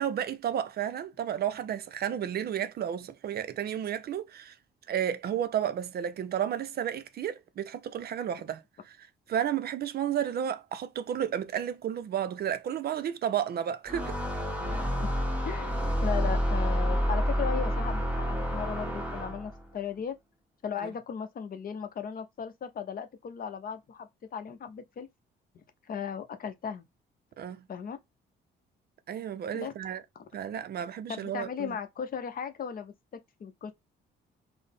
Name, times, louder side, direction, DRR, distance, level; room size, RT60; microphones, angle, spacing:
voice 1, 0.0-4.6 4.9-9.0 9.3-14.4 20.8-20.9 27.4-27.6 29.1-30.0 30.3-31.8, right 9 dB, 50° right, 0.4 m, -32 dB
sound 1, 13.9-19.6, equal, 5° right, 1.0 m, -29 dB
voice 2, 15.4-20.1 20.6-25.1 25.5-26.8 27.7-28.0 29.5-29.7 30.2-30.3 31.1-32.9 33.4-33.7, left 7 dB, 45° left, 0.6 m, -36 dB
3.8 x 2.0 x 3.5 m
cardioid pair, 90°, 20 cm